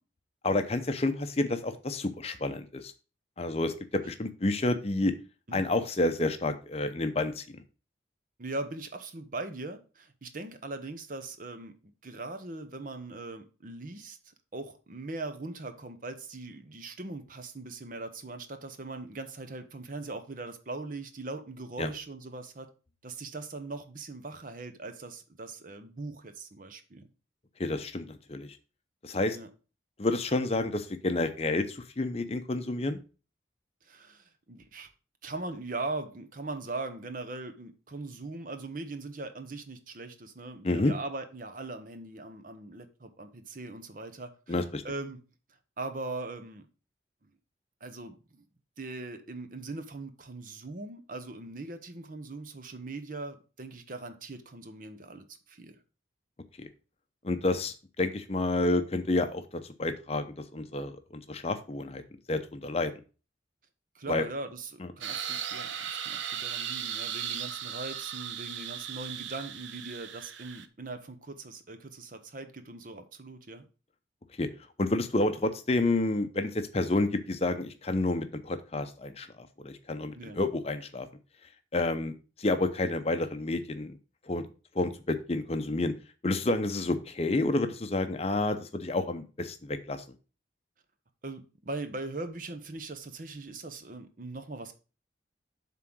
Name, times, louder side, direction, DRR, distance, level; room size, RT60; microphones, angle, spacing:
voice 1, 0.4-2.9 3.4-5.1 5.5-7.6 21.8-21.9 27.6-28.6 29.0-29.4 30.0-33.0 40.6-40.9 44.5-44.8 56.6-56.7 57.2-60.2 60.5-60.9 61.3-62.0 62.3-62.9 64.1-64.3 64.8-64.9 74.4-74.5 74.8-81.1 81.7-84.0 84.3-84.4 84.7-85.9 86.2-90.0, left 2 dB, 30° left, 0.6 m, -29 dB
voice 2, 8.4-11.7 12.0-22.7 23.0-27.1 29.3-29.5 33.8-34.9 35.2-45.2 45.8-46.7 47.8-48.4 48.8-55.8 63.9-73.7 80.1-80.4 91.2-94.7, right 2 dB, 45° right, 0.8 m, -40 dB
sound 1, 65.0-70.7, right 9 dB, 80° right, 0.6 m, -37 dB
7.4 x 3.8 x 6.0 m
head